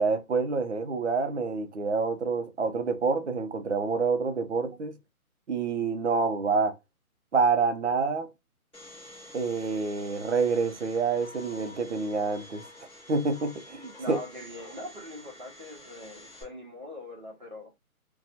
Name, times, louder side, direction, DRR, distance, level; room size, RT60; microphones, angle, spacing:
voice 1, 0.0-5.0 5.5-6.8 7.3-8.3 9.3-12.6 13.1-14.2, right 4 dB, 50° right, 0.5 m, -27 dB
Domestic sounds home sounds, 8.7-16.4, left 1 dB, ahead, 0.8 m, -48 dB
voice 2, 14.0-17.7, left 1 dB, 30° right, 0.9 m, -42 dB
2.7 x 2.2 x 2.6 m
hypercardioid pair, 170°, 44 cm